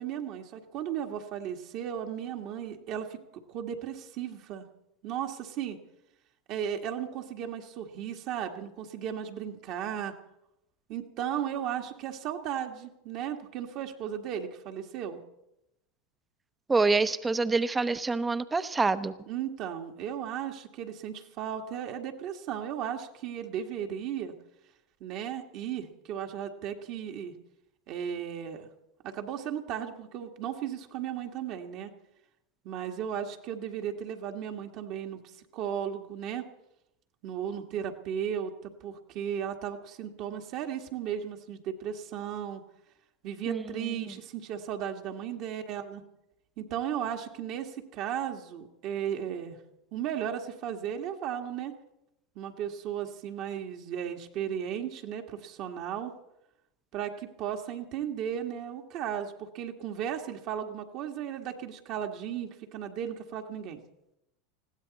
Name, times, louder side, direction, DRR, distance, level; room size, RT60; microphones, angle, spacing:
voice 1, 0.0-4.7 5.0-5.8 6.5-10.1 10.9-15.2 19.3-24.3 25.0-27.3 27.9-28.7 29.0-31.9 32.6-35.2 35.5-36.4 37.2-42.6 43.2-46.0 46.6-49.6 49.9-51.8 52.3-56.1 56.9-63.8, right 9 dB, 55° right, 3 dB, 1.7 m, -35 dB
voice 2, 16.7-19.1 43.5-43.6 44.0-44.1, right 3 dB, 15° right, 13 dB, 0.9 m, -26 dB
20.5 x 16.0 x 4.1 m, 0.86 s
hypercardioid pair, 90°, 0 cm